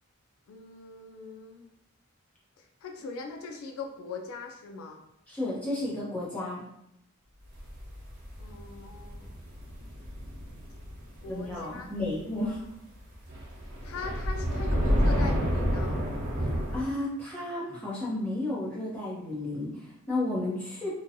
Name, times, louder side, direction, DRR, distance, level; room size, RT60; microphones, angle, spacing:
voice 1, 0.5-1.7 2.6-5.0 8.4-9.3 11.2-12.1 12.4-12.6 13.8-16.1, left 4 dB, 75° left, 3 dB, 0.3 m, -41 dB
voice 2, 5.3-6.6 11.3-12.6 16.4-20.9, left 2 dB, 5° left, -8 dB, 0.8 m, -32 dB
sound 1, 7.6-12.1 12.4-12.6 13.0-16.8, equal, 55° right, 1.1 m, -30 dB
2.8 x 2.2 x 2.6 m, 0.80 s
head